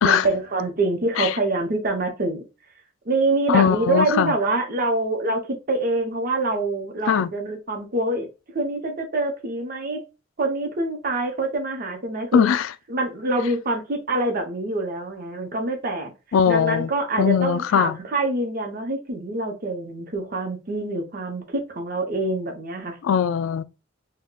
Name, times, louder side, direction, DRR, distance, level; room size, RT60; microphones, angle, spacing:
voice 1, 0.0-2.4 3.1-5.4 5.7-8.3 8.5-10.0 10.4-12.4 12.9-16.1 16.5-23.0, right 2 dB, 45° right, 0.7 m, -25 dB
voice 2, 3.5-4.3 7.1-7.3 12.3-12.7 16.3-16.9 17.2-18.0 23.0-23.6, left 8 dB, 75° left, 0.3 m, -20 dB
3.7 x 2.2 x 2.2 m
head